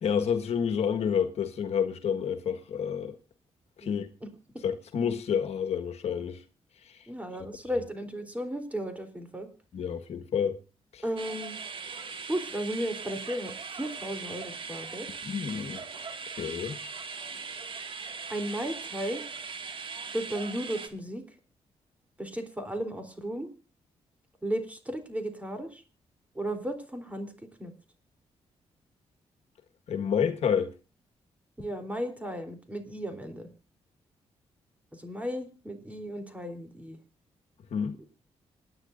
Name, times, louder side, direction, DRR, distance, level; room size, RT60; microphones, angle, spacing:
voice 1, 0.0-3.1 3.8-4.1 4.6-6.4 6.8-7.0 9.7-10.6 10.9-11.0 15.2-15.8 16.3-16.8 29.9-30.7 37.7-38.0, left 7 dB, 70° left, 1.5 m, -29 dB
voice 2, 7.1-9.5 11.0-11.6 12.3-15.1 18.3-19.2 20.1-21.2 22.2-23.5 24.4-25.8 26.4-27.3 27.6-27.7 31.6-33.5 34.9-37.0, equal, 10° right, 3.6 m, -34 dB
sound 1, 11.2-20.9, right 5 dB, 50° right, 2.1 m, -40 dB
27.0 x 9.9 x 2.6 m
cardioid pair, 85°, 11 cm